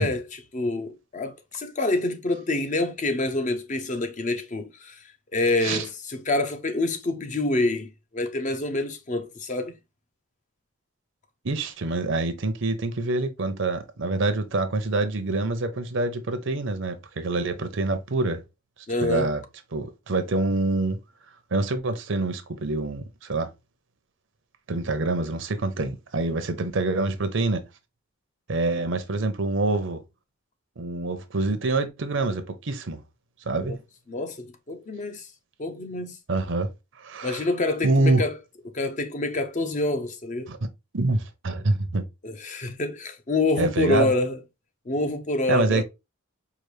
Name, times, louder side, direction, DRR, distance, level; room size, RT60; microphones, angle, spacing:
voice 1, 0.0-5.0 5.3-9.8 18.9-19.3 33.6-33.8 34.1-35.3 35.6-36.2 37.2-38.4 38.7-40.5 42.2-44.4 44.9-45.8, left 2 dB, 35° left, 0.6 m, -27 dB
voice 2, 11.4-18.4 19.0-19.4 19.7-21.0 21.5-23.5 24.7-27.6 28.5-30.0 30.8-33.0 33.5-33.8 36.3-36.7 37.0-37.4 37.8-38.3 40.5-40.7 40.9-42.1 43.6-44.1 45.5-45.8, right 2 dB, 60° right, 0.7 m, -26 dB
4.9 x 2.4 x 3.2 m
head